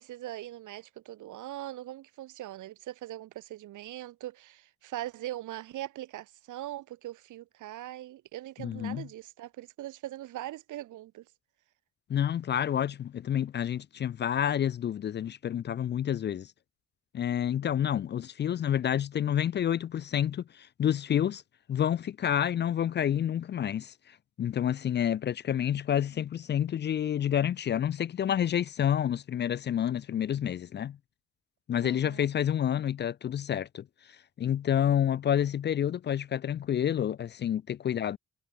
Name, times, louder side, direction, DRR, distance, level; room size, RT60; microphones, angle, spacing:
voice 1, 0.0-11.2 31.8-32.3, right 14 dB, 85° right, 2.4 m, -41 dB
voice 2, 8.6-9.1 12.1-16.5 17.1-21.4 21.7-23.9 24.4-31.0 31.7-33.8 34.4-38.2, left 10 dB, 35° left, 0.4 m, -29 dB
cardioid pair, 90°, 30 cm